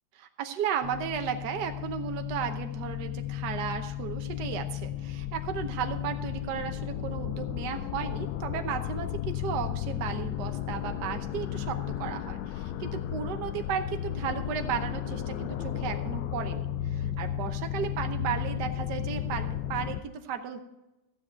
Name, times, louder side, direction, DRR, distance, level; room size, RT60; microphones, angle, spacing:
voice 1, 0.1-20.6, right 8 dB, 65° right, 6 dB, 1.4 m, -34 dB
sound 1, 0.8-20.0, left 12 dB, 75° left, 1.2 m, -34 dB
14.5 x 8.1 x 4.5 m, 0.96 s
omnidirectional pair, 2.1 m